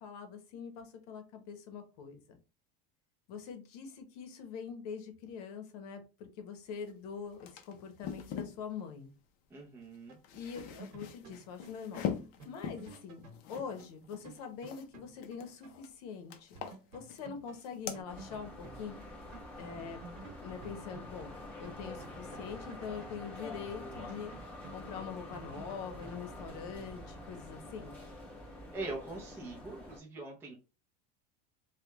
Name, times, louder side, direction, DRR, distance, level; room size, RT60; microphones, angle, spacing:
voice 1, 0.0-2.4 3.3-9.1 10.3-12.0 12.4-13.2 13.5-16.5 16.9-19.0 19.6-20.0 20.4-21.3 21.6-24.3 24.7-27.9, left 6 dB, 70° left, 6 dB, 0.9 m, -44 dB
sound 1, 6.9-7.0 7.2-8.6 9.9-14.9 15.2-15.9 16.3-17.3 17.5-18.0, left 8 dB, 45° left, 0.5 m, -42 dB
voice 2, 9.5-10.2 28.7-30.5, right 2 dB, 10° right, -2 dB, 0.5 m, -42 dB
sound 2, 10.1-15.8 16.1-16.2 16.5-19.5 19.8-23.5 23.9-26.7, right 4 dB, 85° right, 1.0 m, -53 dB
sound 3, 18.1-30.0, left 1 dB, 10° left, 0.9 m, -47 dB
3.3 x 2.2 x 2.9 m, 0.31 s
cardioid pair, 160°, 20 cm